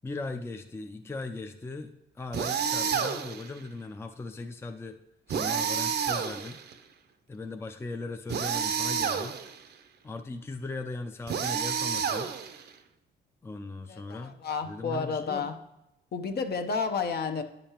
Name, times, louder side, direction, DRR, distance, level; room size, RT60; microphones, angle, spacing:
voice 1, 0.0-5.0 5.3-6.6 7.3-9.4 10.0-12.3 13.4-14.4 14.6-15.5, left 3 dB, 10° left, 6 dB, 0.4 m, -38 dB
sound 1, 2.3-3.5 5.3-6.7 8.3-9.6 11.3-12.7, right 7 dB, 55° right, 0.6 m, -30 dB
voice 2, 13.9-15.5 16.1-17.4, left 5 dB, 55° left, 7 dB, 0.8 m, -31 dB
9.6 x 5.2 x 2.9 m, 0.88 s
cardioid pair, 90°, 20 cm